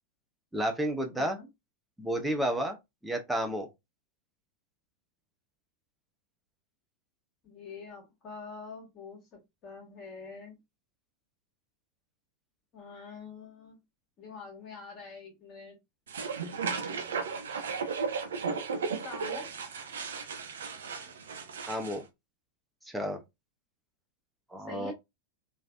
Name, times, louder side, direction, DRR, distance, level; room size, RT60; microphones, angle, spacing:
voice 1, 0.5-1.4 2.0-2.8 3.0-3.7 21.7-22.0 22.9-23.2 24.5-24.9, right 1 dB, 5° right, 0.6 m, -31 dB
voice 2, 1.1-1.5 7.4-10.6 12.7-13.8 14.2-15.8 19.0-19.5 24.7-24.9, left 4 dB, 35° left, 1.3 m, -45 dB
sound 1, 16.1-22.0, right 5 dB, 65° right, 0.5 m, -35 dB
3.2 x 2.5 x 2.4 m
figure-of-eight pair, 90°, 0 cm